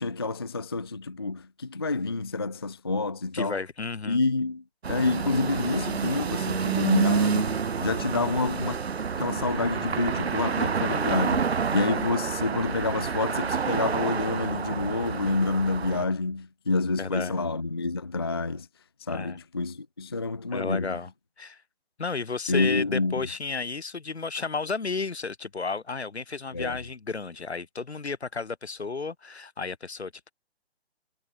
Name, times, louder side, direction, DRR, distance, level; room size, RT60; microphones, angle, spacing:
voice 1, 0.0-3.6 4.0-8.8 9.1-18.7 19.1-21.0 22.5-23.3 26.5-26.8, left 3 dB, 25° left, 0.3 m, -28 dB
voice 2, 3.3-4.2 17.0-17.5 19.1-19.4 20.5-21.1 21.4-21.6 22.0-30.3, left 4 dB, 80° left, 4.5 m, -33 dB
sound 1, 4.8-16.1, right 6 dB, 70° right, 1.5 m, -28 dB
figure-of-eight pair, 145°, 32 cm